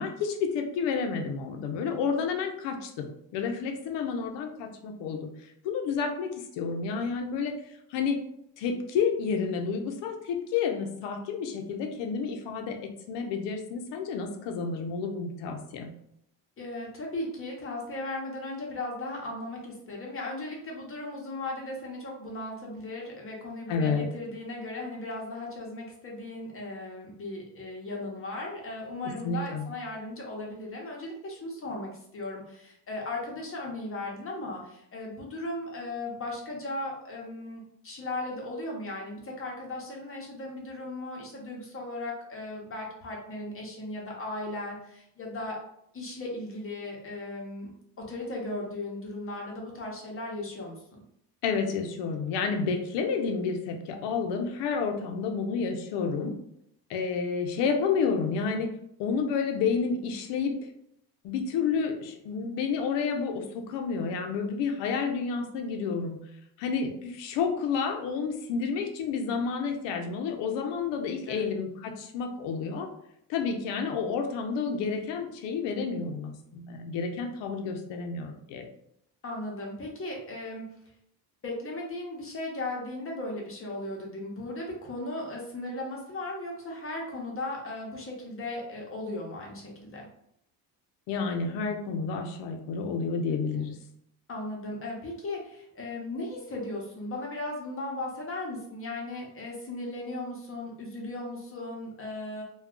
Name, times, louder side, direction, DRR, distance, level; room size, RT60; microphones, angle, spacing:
voice 1, 0.0-5.3 5.6-7.6 7.9-8.2 8.6-15.9 23.7-24.1 29.2-29.7 51.4-56.4 56.9-58.7 59.0-60.5 61.2-66.2 66.6-72.9 73.3-78.7 91.1-93.8, left 5 dB, 75° left, 4 dB, 0.6 m, -30 dB
voice 2, 16.6-45.6 45.9-47.7 48.0-51.0 71.3-71.5 79.2-80.6 81.4-90.1 94.3-102.4, left 2 dB, 30° left, -1 dB, 0.8 m, -37 dB
2.3 x 2.3 x 3.6 m, 0.74 s
cardioid pair, 110°, 43 cm